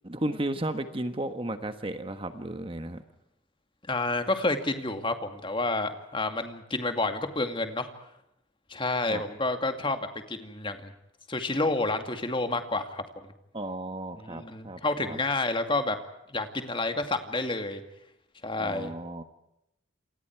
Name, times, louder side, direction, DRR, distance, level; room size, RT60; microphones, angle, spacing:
voice 1, 0.0-3.0 9.1-9.2 13.5-15.2 18.6-19.2, right 1 dB, 25° right, 8 dB, 1.3 m, -34 dB
voice 2, 3.9-7.9 8.7-10.9 11.3-13.0 14.2-16.0 16.3-17.8 18.4-18.9, left 2 dB, 25° left, 7 dB, 2.3 m, -29 dB
28.5 x 28.0 x 4.7 m, 0.84 s
head